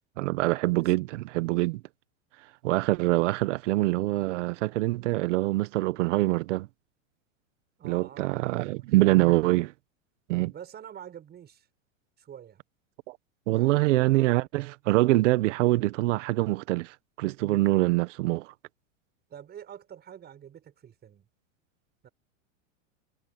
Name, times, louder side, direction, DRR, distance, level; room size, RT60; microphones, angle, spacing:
voice 1, 0.2-1.8 2.6-6.7 7.8-9.7 10.3-10.5 13.1-13.2 13.5-18.5, right 19 dB, 65° right, 1.4 m, -25 dB
voice 2, 7.8-8.9 10.5-11.7 12.2-12.6 13.5-14.3 19.3-21.3 22.0-22.1, right 9 dB, 25° right, 7.3 m, -46 dB
supercardioid pair, 135°, 39 cm